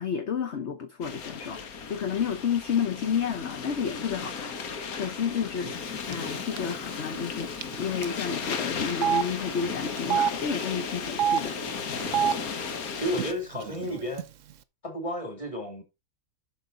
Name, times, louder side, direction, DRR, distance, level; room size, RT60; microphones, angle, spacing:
voice 1, 0.0-7.5 7.8-11.6, left 7 dB, 50° left, 1.2 m, -31 dB
sound 1, 1.0-13.3, left 5 dB, 70° left, 1.7 m, -35 dB
Telephone, 6.1-6.3 6.6-6.7 7.6-7.7 8.0-8.1 8.9-9.2 10.0-10.3 11.1-11.4 12.0-12.3 13.1-13.3 13.5-14.2, right 9 dB, 65° right, 1.0 m, -25 dB
voice 2, 12.9-14.3 14.8-15.8, equal, 20° left, 2.7 m, -32 dB
7.8 x 6.6 x 3.9 m
omnidirectional pair, 1.6 m